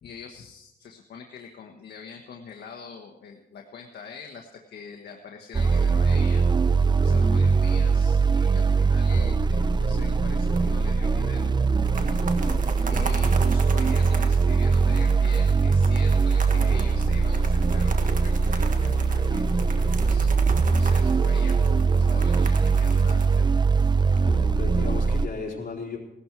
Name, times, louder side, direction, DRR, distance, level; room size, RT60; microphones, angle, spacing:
voice 1, 0.0-6.5 7.0-11.5 11.9-12.2 12.9-19.5 19.8-20.3 20.7-23.5, left 6 dB, 75° left, 1 dB, 1.4 m, -43 dB
sound 1, 5.5-25.3, right 4 dB, 25° right, 0.6 m, -21 dB
sound 2, 10.6-11.3 11.7-24.2, right 4 dB, 50° right, 1.6 m, -38 dB
voice 2, 24.2-26.0, left 4 dB, 55° left, -3 dB, 4.2 m, -35 dB
18.0 x 12.5 x 4.7 m, 0.89 s
cardioid pair, 100°, 17 cm